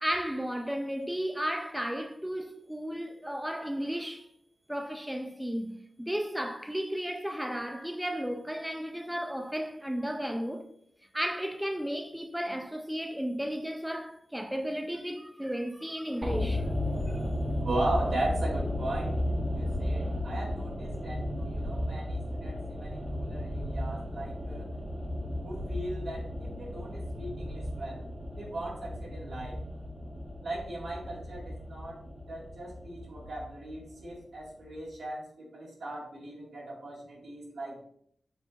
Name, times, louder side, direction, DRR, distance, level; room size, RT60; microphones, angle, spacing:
voice 1, 0.0-4.3 4.7-10.7 11.1-16.7 17.1-17.2, equal, 5° right, 0.5 m, -34 dB
sound 1, 16.2-34.4 34.7-34.8, left 1 dB, 40° right, 1.1 m, -34 dB
voice 2, 17.6-24.7 25.4-28.1 28.4-29.6 30.4-32.0 32.3-37.8, right 1 dB, 75° right, 1.9 m, -38 dB
5.8 x 3.6 x 2.4 m
cardioid pair, 45°, 0 cm